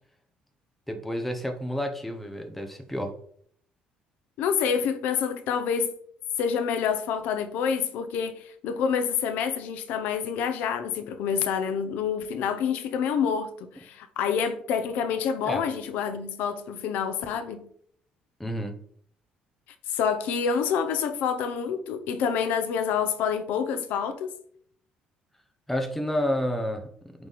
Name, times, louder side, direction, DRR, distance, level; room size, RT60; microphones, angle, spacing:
voice 1, 0.9-3.1 15.4-15.6 18.4-18.8 25.7-27.3, equal, 5° left, 0.9 m, -30 dB
voice 2, 4.4-5.9 6.4-17.7 19.9-24.3, left 7 dB, 80° left, 0.7 m, -27 dB
8.7 x 3.3 x 4.2 m
cardioid pair, 140°, 3 cm